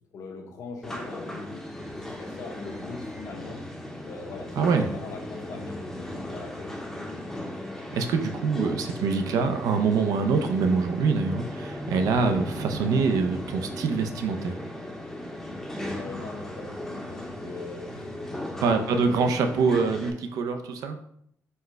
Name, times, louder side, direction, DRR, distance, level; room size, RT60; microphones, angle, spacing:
voice 1, 0.1-3.6 4.1-7.5 15.9-19.1, left 3 dB, 65° left, 2 dB, 0.9 m, -41 dB
sound 1, 0.8-20.1, left 1 dB, 5° left, 0.6 m, -37 dB
voice 2, 4.6-4.9 7.9-14.6 18.6-21.0, right 4 dB, 85° right, 6 dB, 0.5 m, -25 dB
4.4 x 2.1 x 4.5 m, 0.71 s
cardioid pair, 120°, 6 cm